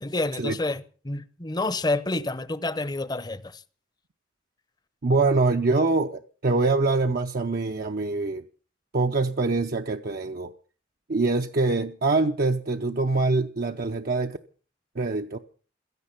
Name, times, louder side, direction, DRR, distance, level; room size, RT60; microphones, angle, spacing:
voice 1, 0.0-3.6, left 2 dB, 20° left, 0.8 m, -29 dB
voice 2, 5.0-8.4 8.9-10.5 11.1-14.4 15.0-15.4, right 3 dB, 50° right, 0.6 m, -24 dB
16.5 x 14.0 x 5.8 m
head